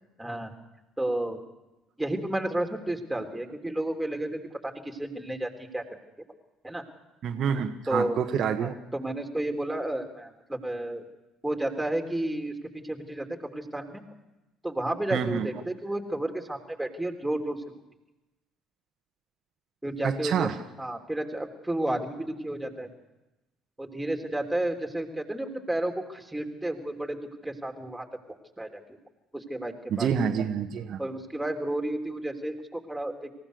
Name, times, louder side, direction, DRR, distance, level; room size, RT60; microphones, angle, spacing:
voice 1, 0.2-0.5 1.0-1.4 2.0-5.8 6.6-6.8 7.9-8.2 8.6-11.0 11.4-14.0 14.6-17.6 19.8-20.5 20.8-22.9 23.8-28.0 28.6-28.8 29.3-30.1 31.0-33.2, right 1 dB, 5° right, 4 dB, 3.3 m, -32 dB
voice 2, 7.2-8.7 15.1-15.5 20.0-20.6 29.9-31.0, right 7 dB, 50° right, 5 dB, 1.4 m, -27 dB
26.5 x 16.0 x 6.8 m, 1.0 s
figure-of-eight pair, 55°, 0 cm